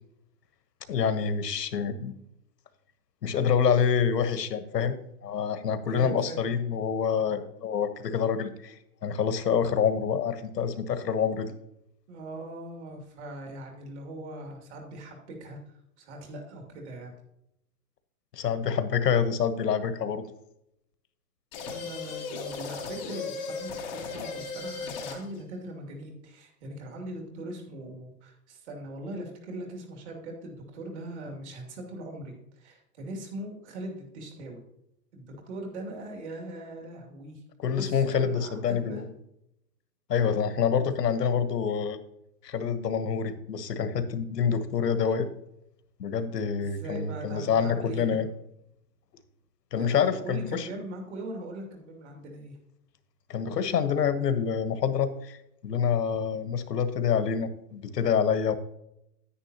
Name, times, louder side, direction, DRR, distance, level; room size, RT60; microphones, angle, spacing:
voice 1, 0.9-2.1 3.2-11.5 18.3-20.2 37.6-39.1 40.1-42.0 42.4-45.3 46.0-48.3 49.7-50.7 53.3-55.4 55.6-58.6, left 7 dB, 80° left, 11 dB, 1.3 m, -27 dB
voice 2, 5.9-6.4 12.1-17.1 21.7-34.6 35.1-37.4 37.8-39.0 46.6-48.2 49.8-52.6, right 1 dB, 45° right, 1 dB, 2.7 m, -40 dB
sound 1, 21.5-25.4, left 4 dB, 10° left, 0.7 m, -36 dB
9.8 x 9.7 x 2.9 m, 0.81 s
hypercardioid pair, 160°, 48 cm